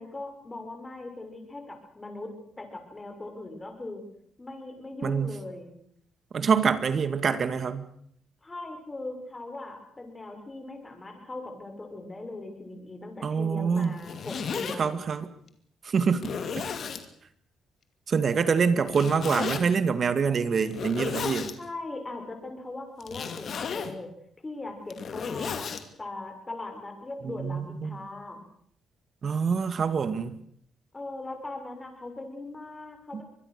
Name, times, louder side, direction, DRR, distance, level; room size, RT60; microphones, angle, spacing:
voice 1, 0.0-2.3 2.6-4.0 4.4-5.8 8.4-14.9 21.6-24.1 24.4-25.7 26.0-28.5 30.9-33.2, left 2 dB, 20° left, 5 dB, 6.6 m, -39 dB
voice 2, 5.0-5.3 6.3-7.9 13.2-13.9 14.8-15.3 15.8-16.3 18.1-21.5 27.2-28.0 29.2-30.4 33.1-33.2, right 6 dB, 45° right, 12 dB, 2.1 m, -25 dB
Zipper (clothing), 13.8-14.8 15.5-15.6 16.2-17.0 18.9-19.6 20.6-21.5 23.0-23.9 24.7-25.8, left 6 dB, 55° left, 2.6 m, -33 dB
25.0 x 21.0 x 6.8 m, 0.66 s
cardioid pair, 90°, 0 cm